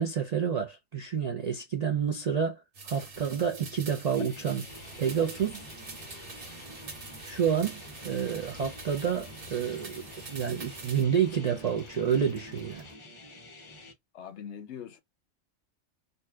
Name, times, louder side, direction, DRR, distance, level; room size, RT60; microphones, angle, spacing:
voice 1, 0.0-4.6 5.0-5.6 7.2-12.8, right 7 dB, 70° right, 0.4 m, -29 dB
sound 1, 2.7-11.0, right 3 dB, 85° right, 1.4 m, -46 dB
sound 2, 4.2-13.9, left 1 dB, 35° left, 0.5 m, -49 dB
sound 3, 4.7-12.9, equal, 45° right, 1.1 m, -51 dB
voice 2, 14.1-15.0, left 8 dB, 65° left, 0.8 m, -42 dB
2.6 x 2.3 x 3.3 m
omnidirectional pair, 1.3 m